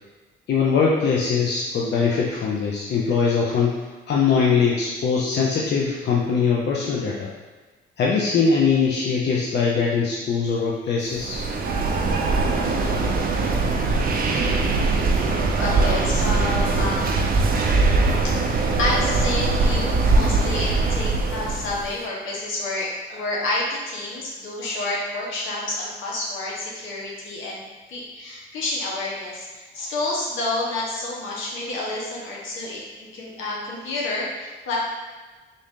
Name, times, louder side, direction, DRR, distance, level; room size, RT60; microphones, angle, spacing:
voice 1, 0.5-3.7 4.1-7.3 8.0-11.4, left 5 dB, 60° left, -4 dB, 0.6 m, -21 dB
sound 1, 11.1-21.9, right 3 dB, 50° right, 0.5 m, -21 dB
voice 2, 15.4-17.3 18.2-27.6 27.9-34.8, left 2 dB, 80° left, -4 dB, 1.1 m, -29 dB
3.8 x 2.6 x 3.6 m, 1.3 s
cardioid pair, 90°, 20 cm